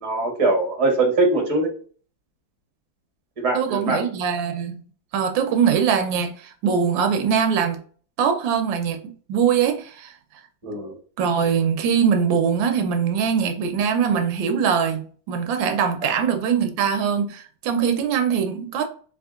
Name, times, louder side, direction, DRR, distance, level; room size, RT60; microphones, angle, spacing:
voice 1, 0.0-1.7 3.4-4.0 10.6-11.0 16.0-16.1, right 2 dB, 25° right, 0.8 m, -22 dB
voice 2, 3.5-4.8 5.1-7.8 8.2-10.1 11.2-18.8, right 7 dB, 80° right, 1.4 m, -22 dB
3.8 x 3.6 x 2.4 m
omnidirectional pair, 2.1 m